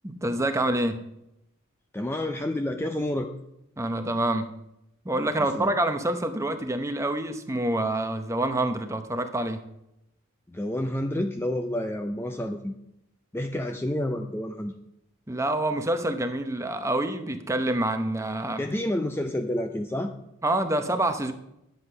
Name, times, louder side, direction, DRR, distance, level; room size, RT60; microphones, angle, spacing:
voice 1, 0.0-1.0 3.8-4.5 5.0-9.6 15.3-18.6 20.4-21.3, right 1 dB, 15° right, 8 dB, 0.8 m, -27 dB
voice 2, 1.9-3.3 5.4-5.7 10.5-12.7 13.3-14.8 18.6-20.1, left 1 dB, 10° left, 6 dB, 0.4 m, -29 dB
10.5 x 8.0 x 5.5 m, 0.84 s
head